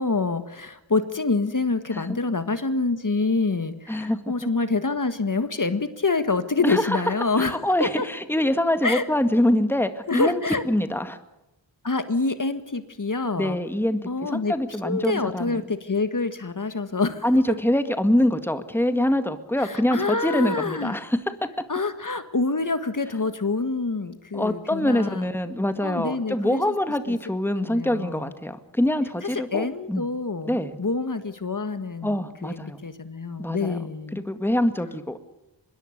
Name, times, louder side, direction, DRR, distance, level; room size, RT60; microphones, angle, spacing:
voice 1, 0.0-8.1 8.8-9.0 10.1-10.6 11.8-13.6 14.0-14.5 14.8-17.2 19.6-20.9 21.7-25.2 25.8-26.6 27.1-27.2 27.6-28.3 29.2-34.2, left 3 dB, 45° left, 10 dB, 1.7 m, -26 dB
voice 2, 3.9-4.5 6.6-7.0 7.4-11.2 13.4-15.6 17.2-21.2 24.3-30.0 30.5-30.8 32.0-32.9 33.4-33.8 34.1-35.2, left 1 dB, 5° left, 9 dB, 1.9 m, -24 dB
25.0 x 21.5 x 6.7 m, 0.96 s
wide cardioid pair, 80°, 44 cm